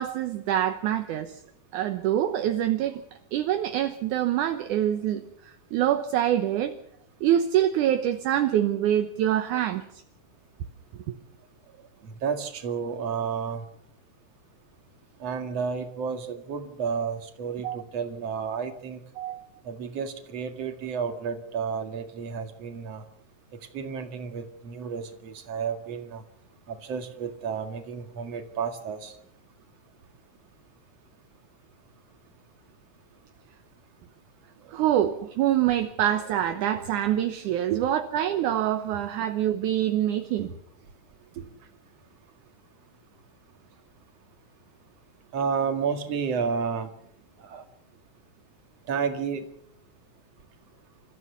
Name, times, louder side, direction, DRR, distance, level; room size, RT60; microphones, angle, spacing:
voice 1, 0.0-1.4 1.7-3.0 3.3-6.8 7.2-9.9 11.1-11.2 17.6-17.8 19.2-19.5 34.7-40.5, right 11 dB, 70° right, 7 dB, 2.2 m, -25 dB
voice 2, 12.0-13.7 15.2-19.0 19.6-23.0 23.7-26.2 26.7-29.1 37.7-37.8 41.4-41.5 45.3-46.9 47.4-47.6 48.9-49.4, right 6 dB, 50° right, 6 dB, 2.8 m, -31 dB
28.0 x 14.5 x 6.9 m, 0.69 s
omnidirectional pair, 4.2 m